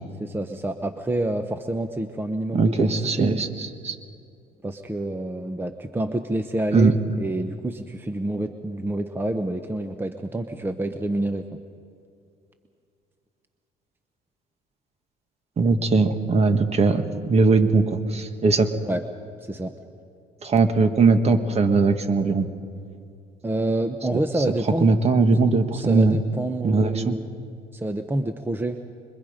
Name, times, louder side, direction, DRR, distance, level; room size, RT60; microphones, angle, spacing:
voice 1, 0.2-3.4 4.6-11.6 17.1-17.2 18.8-19.0 19.4-19.7 23.4-24.9 25.7-27.3 27.7-28.8, right 1 dB, 10° right, 7 dB, 0.9 m, -28 dB
voice 2, 2.5-4.0 6.7-7.0 15.6-18.7 20.4-22.5 24.4-24.5 24.8-26.2 26.6-27.2, right 4 dB, 40° right, 7 dB, 1.7 m, -20 dB
26.0 x 22.5 x 5.2 m, 2.5 s
cardioid pair, 110°, 17 cm